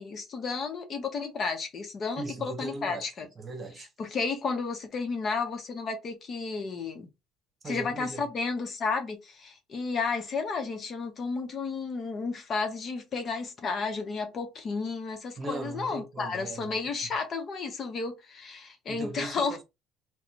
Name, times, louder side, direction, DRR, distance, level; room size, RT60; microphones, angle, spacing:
voice 1, 0.0-3.3 4.0-7.1 7.6-19.6, left 4 dB, 40° left, 1.0 m, -32 dB
voice 2, 2.2-3.0 3.4-3.9 7.6-8.3 15.4-17.1 18.9-19.6, right 2 dB, 30° right, 1.1 m, -38 dB
2.9 x 2.3 x 3.8 m
supercardioid pair, 105°, 0 cm